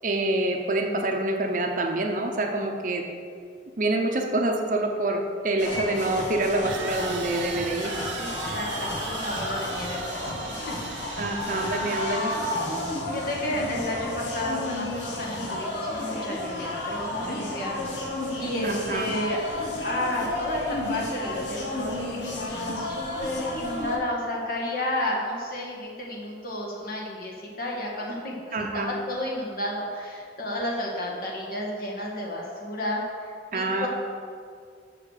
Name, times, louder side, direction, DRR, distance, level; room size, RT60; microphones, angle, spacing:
voice 1, 0.0-3.0 3.8-8.0 11.2-12.3 18.6-19.1 28.5-28.9 33.5-33.9, right 2 dB, 45° right, 3 dB, 0.8 m, -26 dB
sound 1, 5.0-5.1 6.7-12.8, right 5 dB, 85° right, 1.0 m, -38 dB
sound 2, 5.6-24.0, left 1 dB, 70° left, 1.5 m, -32 dB
voice 2, 8.2-10.9 12.6-17.8 18.4-19.4 19.8-33.9, left 1 dB, 50° left, -3 dB, 1.8 m, -32 dB
7.4 x 6.5 x 6.6 m, 2.2 s
head